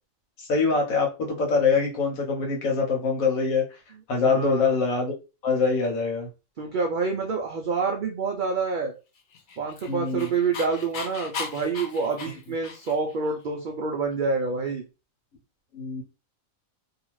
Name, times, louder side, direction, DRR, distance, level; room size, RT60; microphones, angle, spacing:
voice 1, 0.4-3.6 4.1-5.2 5.4-6.3 9.9-10.3 15.7-16.0, left 4 dB, 90° left, 1.4 m, -24 dB
voice 2, 4.2-4.7 6.6-8.9 9.6-14.8, right 4 dB, 75° right, 0.4 m, -27 dB
Dog, 9.3-13.1, left 5 dB, 55° left, 0.5 m, -37 dB
2.7 x 2.4 x 3.0 m
omnidirectional pair, 1.4 m